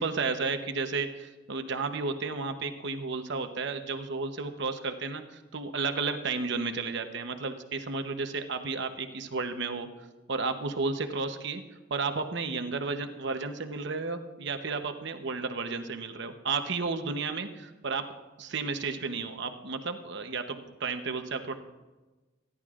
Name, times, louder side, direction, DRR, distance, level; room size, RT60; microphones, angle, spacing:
voice 1, 0.0-9.9 10.3-11.6 11.9-18.0 18.4-21.6, right 4 dB, 65° right, 7 dB, 0.9 m, -32 dB
26.5 x 11.0 x 2.5 m, 1.2 s
head